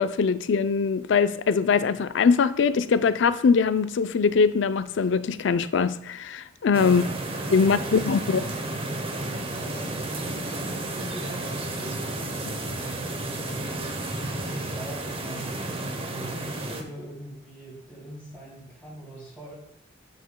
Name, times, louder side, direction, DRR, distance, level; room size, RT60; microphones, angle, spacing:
voice 1, 0.0-7.0 7.5-8.5 12.5-12.6, left 5 dB, 65° left, 0.4 m, -22 dB
sound 1, 6.7-16.8, right 2 dB, 30° right, 0.8 m, -32 dB
voice 2, 7.6-8.0 9.4-13.9 14.3-19.5, right 1 dB, 10° right, 2.9 m, -43 dB
9.2 x 6.8 x 2.2 m
head